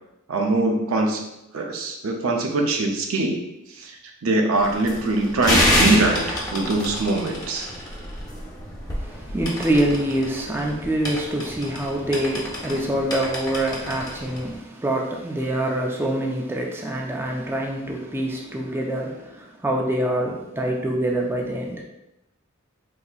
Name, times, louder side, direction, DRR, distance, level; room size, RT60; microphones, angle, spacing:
voice 1, 0.3-1.2 1.5-3.4 3.8-3.9 4.2-7.7, right 2 dB, 80° right, 3 dB, 0.5 m, -22 dB
sound 1, 4.6-14.6, left 1 dB, 20° left, 0.7 m, -28 dB
voice 2, 9.0-21.8, right 1 dB, 10° right, 0 dB, 0.3 m, -25 dB
3.9 x 2.8 x 2.4 m, 0.87 s
head